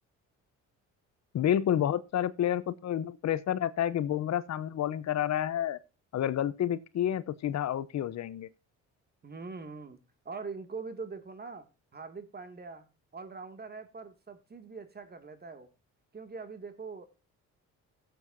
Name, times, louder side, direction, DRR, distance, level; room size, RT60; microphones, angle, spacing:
voice 1, 1.3-5.8 6.1-8.5, left 10 dB, 60° left, 0.8 m, -29 dB
voice 2, 9.2-10.0 10.2-11.7 11.9-15.7 16.1-17.0, right 4 dB, 30° right, 2.4 m, -43 dB
17.0 x 7.8 x 2.7 m
cardioid pair, 90°, 30 cm